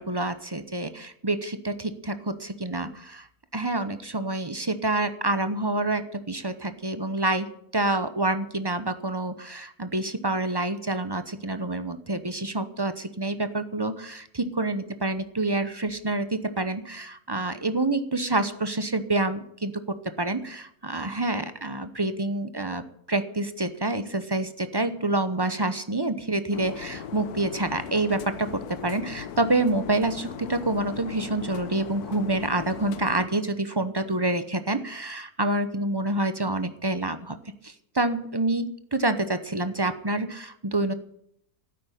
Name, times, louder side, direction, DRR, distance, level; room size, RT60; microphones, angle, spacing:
voice 1, 0.0-3.3 3.5-7.5 7.7-19.8 20.2-37.4 37.6-40.9, right 2 dB, 20° right, 10 dB, 0.6 m, -27 dB
sound 1, 26.5-33.3, left 8 dB, 75° left, 1.4 m, -38 dB
12.5 x 9.5 x 9.9 m, 0.70 s
omnidirectional pair, 1.7 m